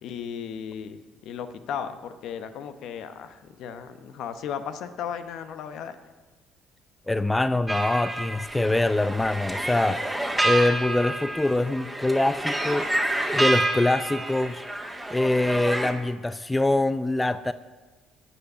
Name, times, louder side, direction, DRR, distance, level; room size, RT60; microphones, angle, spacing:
voice 1, 0.0-6.0, left 8 dB, 65° left, 10 dB, 0.9 m, -35 dB
voice 2, 7.1-12.9 13.3-14.6 15.1-17.5, left 2 dB, 15° left, 14 dB, 0.5 m, -24 dB
sound 1, 7.7-15.9, right 1 dB, 5° right, 1.9 m, -28 dB
11.0 x 7.2 x 8.6 m, 1.2 s
hypercardioid pair, 55°, 0 cm